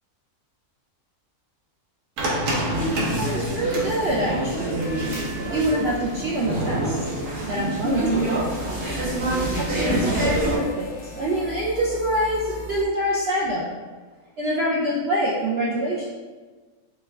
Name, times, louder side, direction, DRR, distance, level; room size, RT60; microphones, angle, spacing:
sound 1, 2.2-10.3, right 1 dB, 90° right, 1.3 m, -31 dB
sound 2, 2.5-10.6, right 1 dB, 45° right, 1.3 m, -27 dB
voice 1, 3.1-7.0 7.4-8.7 9.5-13.7 14.4-16.1, right 1 dB, 65° right, -5 dB, 0.6 m, -26 dB
sound 3, 7.8-12.8, equal, 75° left, 0.5 m, -39 dB
4.3 x 2.2 x 3.3 m, 1.4 s
omnidirectional pair, 1.6 m